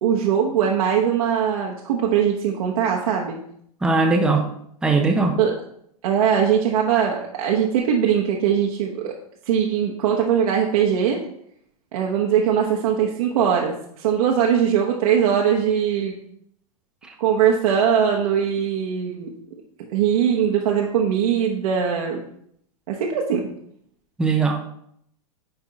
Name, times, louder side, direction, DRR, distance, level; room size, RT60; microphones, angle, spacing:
voice 1, 0.0-3.4 5.4-5.5 6.0-9.1 9.5-11.2 11.9-16.1 17.2-19.3 19.9-22.2 22.9-23.5, right 8 dB, 70° right, -1 dB, 1.1 m, -21 dB
voice 2, 3.8-4.4 4.8-5.4 24.2-24.6, right 3 dB, 5° right, 3 dB, 0.6 m, -19 dB
9.9 x 3.6 x 3.9 m, 0.70 s
supercardioid pair, 140°, 19 cm